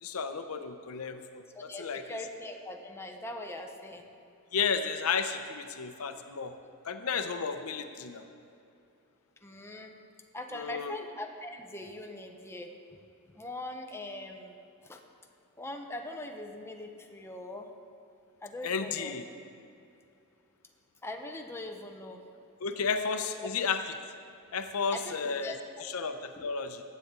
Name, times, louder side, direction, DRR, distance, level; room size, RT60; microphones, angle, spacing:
voice 1, 0.0-2.2 4.5-6.5 6.8-8.2 10.5-11.0 18.6-19.2 22.6-23.8 24.5-25.5 25.8-26.8, left 5 dB, 75° left, 8 dB, 0.6 m, -33 dB
voice 2, 1.5-4.1 9.4-9.9 10.3-12.7 13.3-14.5 14.8-15.0 15.6-17.7 18.4-19.2 21.0-22.2 24.9-25.9, left 1 dB, 10° left, 3 dB, 0.8 m, -41 dB
15.0 x 9.1 x 3.8 m, 2.6 s
head